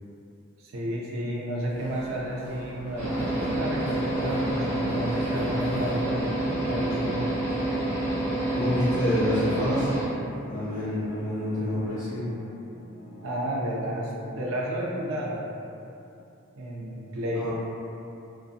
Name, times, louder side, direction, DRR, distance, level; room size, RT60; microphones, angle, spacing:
voice 1, 0.6-7.3 13.2-15.5 16.5-17.5, right 1 dB, 75° right, -3 dB, 0.5 m, -31 dB
Mechanisms, 1.6-6.8, equal, 45° right, 1.2 m, -40 dB
sound 1, 1.8-13.3, equal, 15° right, 0.6 m, -46 dB
sound 2, 3.0-10.0, right 1 dB, 10° left, 0.9 m, -28 dB
voice 2, 8.5-9.9 10.5-12.3 17.3-17.5, left 1 dB, 45° left, -11 dB, 0.6 m, -27 dB
2.6 x 2.1 x 2.4 m, 2.7 s
head